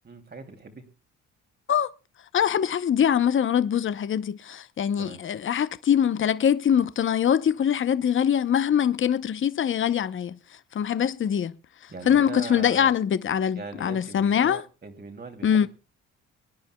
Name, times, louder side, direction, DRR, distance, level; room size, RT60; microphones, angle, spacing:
voice 1, 0.0-0.9 5.0-5.2 11.9-12.9 13.6-15.7, right 4 dB, 35° right, 2.7 m, -40 dB
voice 2, 2.3-10.4 10.7-11.5 12.1-14.6 15.4-15.7, left 8 dB, 40° left, 0.7 m, -23 dB
25.0 x 10.5 x 2.2 m
cardioid pair, 90°, 30 cm